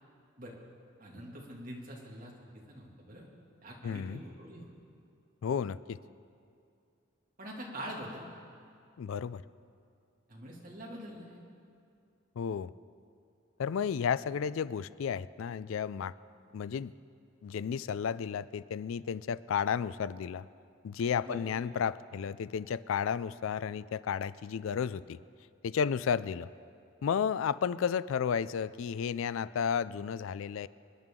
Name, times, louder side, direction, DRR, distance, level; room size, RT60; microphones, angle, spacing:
voice 1, 1.0-2.3 2.7-3.3 3.6-4.7 7.4-8.3 10.3-11.4 21.2-21.4, equal, 40° right, -3 dB, 2.4 m, -44 dB
voice 2, 3.8-4.2 5.4-6.0 9.0-9.4 12.4-12.7 13.6-16.1 16.5-16.9 17.4-20.5 20.8-25.2 25.6-26.5 27.0-30.7, left 7 dB, 75° left, 17 dB, 0.3 m, -32 dB
26.0 x 10.5 x 3.7 m, 2.4 s
head